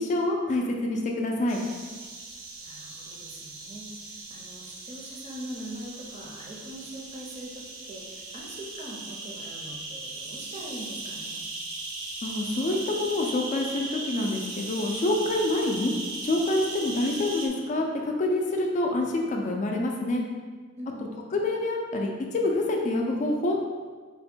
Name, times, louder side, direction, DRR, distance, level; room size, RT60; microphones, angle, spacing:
voice 1, 0.0-1.6 12.2-15.9 16.2-20.2 21.3-23.7, left 2 dB, 35° left, 1 dB, 0.3 m, -27 dB
sound 1, 1.5-17.5, right 2 dB, 80° right, 0.6 m, -38 dB
voice 2, 2.6-11.5 20.8-21.1, right 1 dB, 35° right, -2 dB, 0.5 m, -42 dB
3.4 x 2.1 x 4.3 m, 1.5 s
head